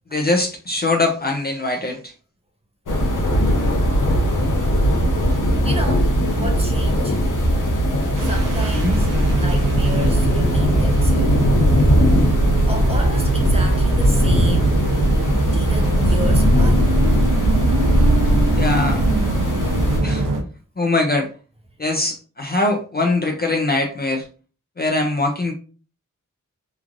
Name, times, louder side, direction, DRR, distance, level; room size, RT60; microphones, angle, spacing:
voice 1, 0.1-2.1 8.7-9.0 18.6-19.1 20.0-20.3 20.8-21.3 21.8-24.3 24.8-25.5, left 2 dB, 30° left, 0.4 m, -22 dB
sound 1, 2.9-20.0, equal, 80° left, 0.8 m, -19 dB
voice 2, 5.6-7.2 8.2-11.3 12.7-14.8 15.5-16.8, right 1 dB, 20° right, 0.7 m, -32 dB
sound 2, 8.1-20.4, right 2 dB, 85° right, 0.6 m, -23 dB
3.0 x 2.4 x 2.4 m
wide cardioid pair, 70°, 31 cm